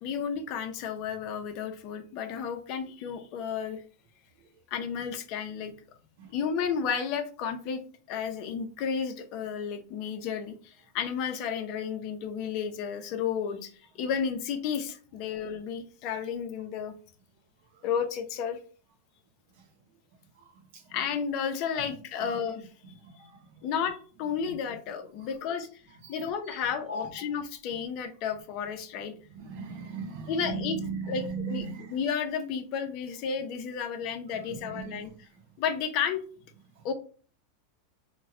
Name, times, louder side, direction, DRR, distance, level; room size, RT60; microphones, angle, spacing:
voice 1, 0.0-3.8 4.7-5.7 6.3-7.8 8.1-16.9 17.8-18.6 20.9-23.2 23.6-25.7 26.1-29.1 30.3-30.8 31.1-31.7 31.9-35.1 35.6-36.2 36.8-36.9, left 7 dB, 50° left, 0.5 m, -32 dB
voice 2, 20.4-21.0 21.7-21.9 22.2-22.3 22.9-23.7 24.4-24.8 25.2-25.3 26.0-27.1 29.3-32.0 34.3-35.4 36.7-36.9, right 4 dB, 70° right, 0.7 m, -39 dB
3.0 x 2.1 x 3.6 m
hypercardioid pair, 120°, 0 cm